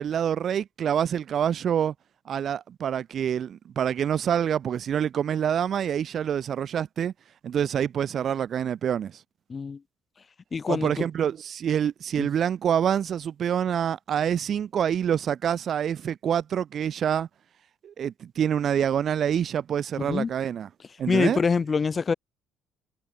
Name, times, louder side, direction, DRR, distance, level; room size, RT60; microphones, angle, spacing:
voice 1, 0.0-1.9 2.3-7.1 7.4-9.1 10.7-17.3 17.8-20.7 21.0-21.4, right 9 dB, 55° right, 1.2 m, -26 dB
voice 2, 10.5-11.0 12.2-12.3 20.0-20.3 21.1-22.1, left 5 dB, 35° left, 0.4 m, -25 dB
supercardioid pair, 75°, 0 cm